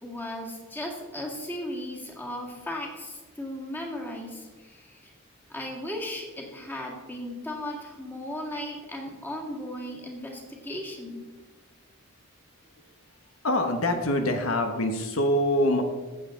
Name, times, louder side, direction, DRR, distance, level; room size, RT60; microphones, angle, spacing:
voice 1, 0.0-5.1 5.5-11.2, left 1 dB, 10° left, -1 dB, 2.0 m, -36 dB
voice 2, 13.4-15.8, left 1 dB, 75° left, 5 dB, 1.1 m, -24 dB
16.0 x 7.4 x 3.8 m, 1.3 s
head